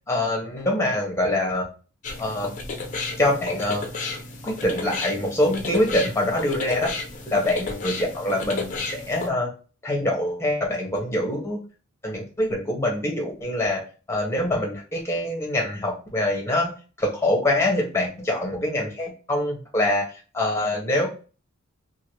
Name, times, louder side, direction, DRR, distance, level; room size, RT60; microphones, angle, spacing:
voice 1, 0.1-1.7 2.2-2.5 3.2-3.8 4.4-6.9 7.3-9.5 9.8-11.6 12.0-13.8 14.1-16.7 17.0-20.0 20.3-21.1, left 1 dB, 15° left, 0 dB, 1.0 m, -24 dB
sound 1, 2.0-9.3, left 3 dB, 35° left, 0.5 m, -33 dB
2.8 x 2.6 x 3.0 m, 0.35 s
head